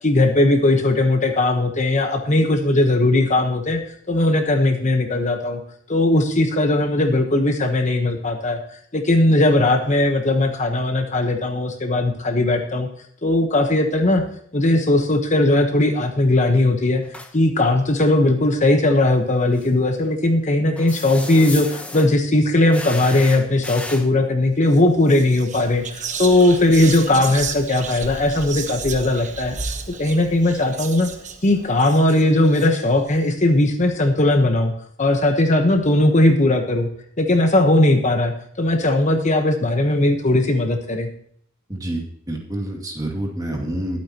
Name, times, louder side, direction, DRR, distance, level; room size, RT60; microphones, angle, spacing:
voice 1, 0.0-3.8 4.1-5.6 5.9-8.6 8.9-12.9 13.2-14.2 14.5-17.0 17.3-31.1 31.4-34.7 35.0-36.9 37.2-41.1, left 1 dB, 35° left, 5 dB, 1.1 m, -18 dB
sound 1, 17.0-17.3 19.6-19.7 20.8-22.1 22.7-24.1, left 2 dB, 5° left, 1.0 m, -33 dB
Whispering, 24.6-24.8 25.1-33.2, right 5 dB, 35° right, 1.1 m, -33 dB
voice 2, 41.7-44.0, right 1 dB, 20° right, 1 dB, 2.3 m, -28 dB
21.0 x 8.7 x 3.0 m, 0.63 s
head